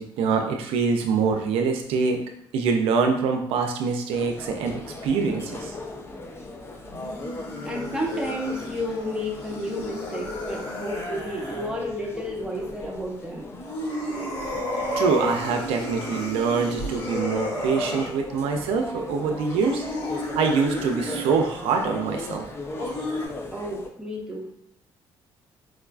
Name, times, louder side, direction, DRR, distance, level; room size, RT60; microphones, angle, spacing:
voice 1, 0.0-2.2 2.5-5.7 14.8-19.8 20.4-22.5, right 5 dB, 85° right, 4 dB, 0.4 m, -24 dB
sound 1, 4.1-23.9, left 2 dB, 25° left, 0.4 m, -38 dB
sound 2, 6.9-11.7 13.5-18.1 19.5-21.5 22.7-23.3, left 1 dB, 75° left, 1.4 m, -32 dB
voice 2, 7.6-13.5 23.5-24.5, equal, 10° right, -2 dB, 0.9 m, -31 dB
4.7 x 2.3 x 2.3 m, 0.74 s
cardioid pair, 95°, 10 cm